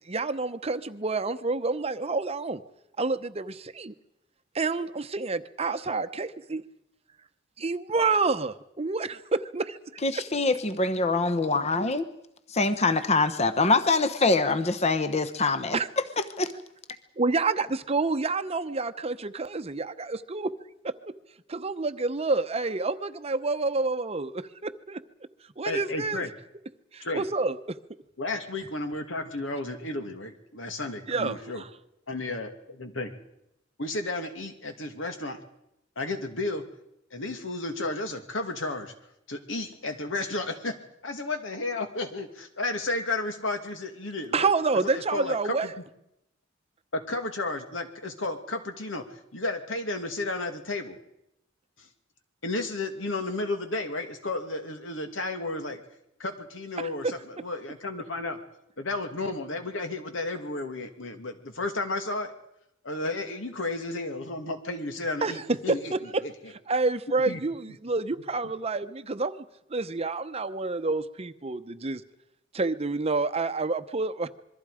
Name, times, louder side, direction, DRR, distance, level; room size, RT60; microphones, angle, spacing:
voice 1, 0.1-2.6 3.0-3.9 4.5-6.6 7.6-10.0 15.7-15.9 17.2-20.5 20.8-21.1 21.5-25.0 25.6-26.2 26.9-27.8 31.1-31.7 44.3-45.7 56.8-57.1 65.2-66.2 66.7-69.4 69.7-72.0 72.5-74.3, right 3 dB, 30° right, 11 dB, 0.8 m, -28 dB
voice 2, 10.0-12.1 12.5-15.8 16.2-16.5, left 3 dB, 35° left, 11 dB, 1.0 m, -24 dB
voice 3, 25.6-26.3 27.0-27.2 28.2-31.6 32.1-33.1 33.8-35.4 36.0-36.6 37.1-38.9 39.3-40.8 41.0-44.5 44.9-45.7 46.9-51.0 51.8-51.9 52.4-55.8 56.2-58.4 58.8-62.3 62.8-65.9 66.2-66.3 67.3-67.4, left 2 dB, 80° left, 6 dB, 2.4 m, -33 dB
26.5 x 22.5 x 5.0 m, 0.82 s
head